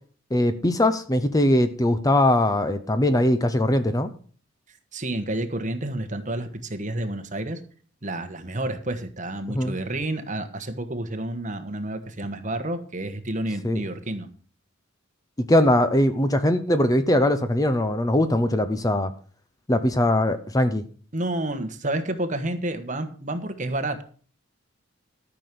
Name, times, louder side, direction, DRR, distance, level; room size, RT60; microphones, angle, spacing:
voice 1, 0.3-4.1 9.5-9.7 13.6-13.8 15.4-19.1 19.7-20.8, left 1 dB, 15° left, 10 dB, 0.7 m, -21 dB
voice 2, 4.9-7.6 8.0-14.3 21.1-24.0, right 1 dB, 35° right, 8 dB, 1.3 m, -30 dB
13.0 x 6.1 x 6.8 m, 0.43 s
head